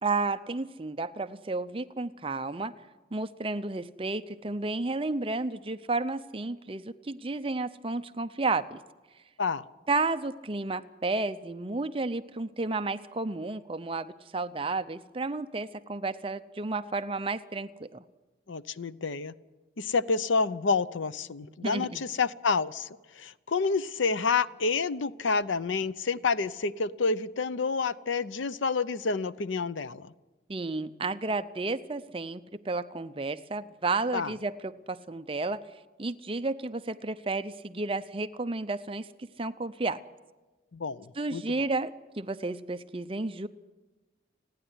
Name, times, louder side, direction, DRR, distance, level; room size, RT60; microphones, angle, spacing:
voice 1, 0.0-2.7 3.1-8.8 9.9-18.0 21.4-22.0 30.5-35.6 36.0-39.1 39.4-40.0 41.2-43.5, right 3 dB, 30° right, 11 dB, 0.6 m, -32 dB
voice 2, 18.5-19.3 19.8-22.9 23.1-30.1 34.1-34.3 40.7-41.4, left 4 dB, 90° left, 16 dB, 0.7 m, -29 dB
30.0 x 10.0 x 9.7 m, 1.2 s
head